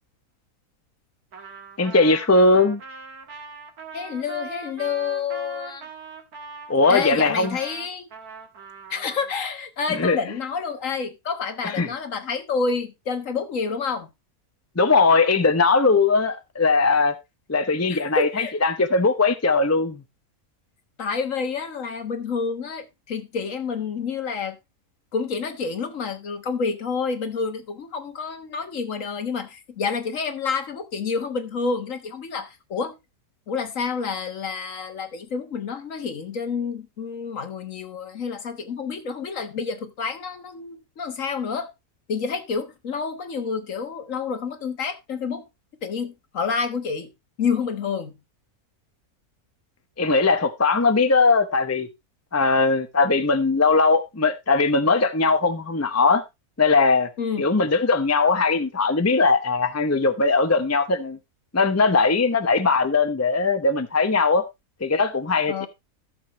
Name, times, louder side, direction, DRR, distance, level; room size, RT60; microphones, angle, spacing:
Trumpet, 1.3-9.3, right 4 dB, 80° right, 2.2 m, -40 dB
voice 1, 1.8-2.8 6.7-7.6 9.9-10.2 11.6-11.9 14.8-17.2 17.5-20.0 50.0-51.9 52.3-56.2 56.6-57.1 57.4-61.2 61.5-64.4 64.8-65.7, left 3 dB, 15° left, 0.6 m, -20 dB
voice 2, 3.9-5.9 6.9-8.0 8.9-14.1 17.9-18.5 21.0-24.6 25.1-33.0 33.5-41.7 42.1-45.4 45.8-47.1 47.4-48.2 57.2-57.5 65.5-65.7, left 5 dB, 60° left, 1.6 m, -28 dB
13.5 x 7.0 x 3.0 m
omnidirectional pair, 1.6 m